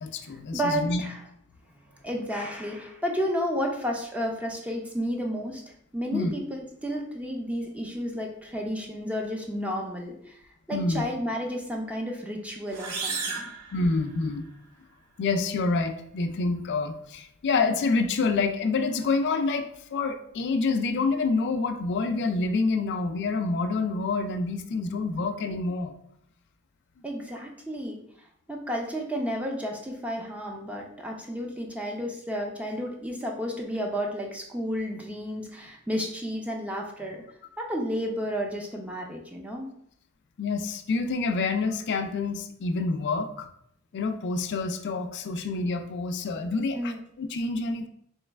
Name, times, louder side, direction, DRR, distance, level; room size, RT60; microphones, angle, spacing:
voice 1, 0.0-1.0 6.1-6.3 10.7-11.0 13.7-14.5 15.2-25.9 40.4-43.5 43.9-47.9, left 3 dB, 55° left, 6 dB, 0.4 m, -27 dB
voice 2, 0.5-1.2 1.9-5.6 5.9-10.3 10.7-13.5 27.0-28.0 28.5-37.2 37.6-39.7 46.7-47.0, equal, 5° right, 0 dB, 0.5 m, -32 dB
sound 1, 12.7-14.5, right 4 dB, 85° right, 0.6 m, -34 dB
3.1 x 3.0 x 3.3 m, 0.69 s
head